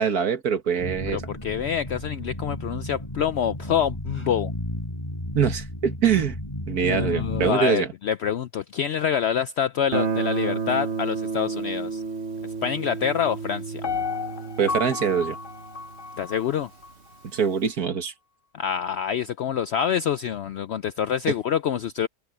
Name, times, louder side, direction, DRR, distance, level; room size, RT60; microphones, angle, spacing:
voice 1, 0.0-1.2 5.4-6.4 6.7-7.9 14.6-15.4 17.3-18.1, right 7 dB, 80° right, 2.1 m, -23 dB
sound 1, 0.8-7.5, equal, 20° left, 7.2 m, -33 dB
voice 2, 1.1-4.5 6.8-12.0 12.6-13.8 16.2-16.7 18.5-22.1, left 8 dB, 70° left, 0.6 m, -26 dB
Guitar, 9.9-16.6, right 4 dB, 50° right, 1.4 m, -31 dB
Piano, 13.8-16.9 17.4-17.5, left 5 dB, 45° left, 0.9 m, -32 dB
omnidirectional pair, 1.6 m